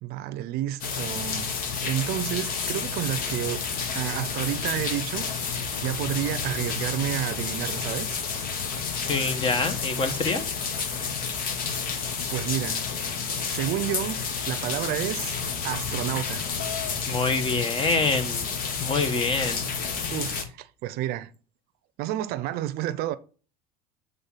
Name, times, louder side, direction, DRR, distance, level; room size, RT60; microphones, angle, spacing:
voice 1, 0.0-1.5 1.8-3.6 3.9-5.4 5.8-8.2 12.3-12.9 13.5-14.2 14.4-16.5 20.1-21.3 22.0-23.2, right 13 dB, 60° right, 0.7 m, -30 dB
sound 1, 0.8-20.4, left 5 dB, 55° left, 1.8 m, -30 dB
voice 2, 9.1-10.4 17.1-19.6, left 3 dB, 30° left, 1.3 m, -26 dB
sound 2, 16.6-17.0 18.0-18.1 18.7-18.8 19.4-20.1, left 10 dB, 85° left, 0.6 m, -38 dB
8.2 x 3.7 x 5.6 m
supercardioid pair, 115°, 18 cm